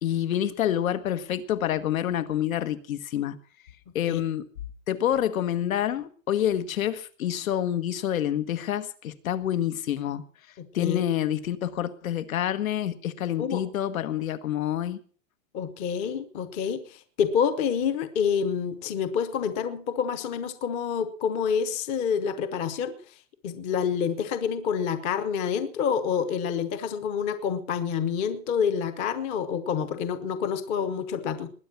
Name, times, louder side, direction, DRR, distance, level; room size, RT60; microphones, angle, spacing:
voice 1, 0.0-3.3 3.9-4.5 4.9-10.2 10.7-15.0, left 11 dB, 80° left, 11 dB, 1.7 m, -27 dB
voice 2, 10.6-11.0 13.4-13.6 15.5-23.1 23.4-31.5, left 7 dB, 15° left, 11 dB, 0.7 m, -28 dB
20.5 x 9.6 x 6.0 m, 0.42 s
supercardioid pair, 175°, 41 cm